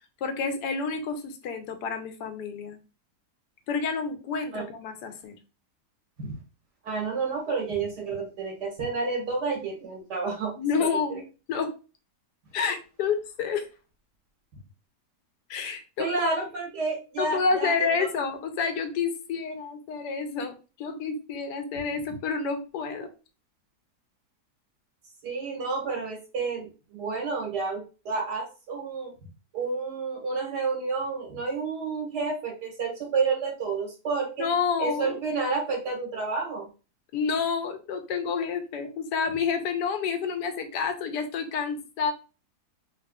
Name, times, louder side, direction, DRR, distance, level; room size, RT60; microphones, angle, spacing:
voice 1, 0.2-2.8 3.7-5.4 10.6-11.7 12.5-13.7 15.5-16.1 17.2-23.1 34.4-35.2 37.1-42.1, left 5 dB, 85° left, 7 dB, 1.3 m, -29 dB
voice 2, 6.8-10.5 16.0-18.1 25.2-29.1 29.5-34.5 34.8-36.7, right 4 dB, 80° right, -1 dB, 2.1 m, -30 dB
4.7 x 3.0 x 2.3 m, 0.33 s
omnidirectional pair, 1.7 m